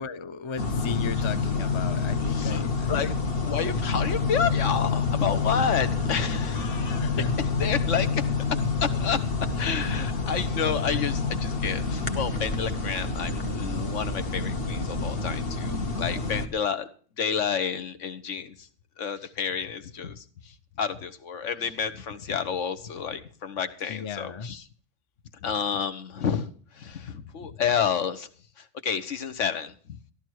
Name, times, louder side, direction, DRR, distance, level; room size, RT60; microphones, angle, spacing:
voice 1, 0.0-3.2 6.9-7.3 23.9-24.5, left 6 dB, 35° left, 12 dB, 0.4 m, -36 dB
sound 1, 0.6-16.5, left 4 dB, 55° left, 1.3 m, -28 dB
voice 2, 2.2-3.1 3.4-7.1 7.4-8.3 8.8-9.2 9.5-16.9 17.2-18.7 19.0-20.2 20.8-24.6 25.4-26.5 26.7-28.3 28.6-30.0, left 7 dB, 90° left, 11 dB, 1.4 m, -30 dB
14.0 x 12.0 x 4.6 m, 0.43 s
omnidirectional pair, 1.2 m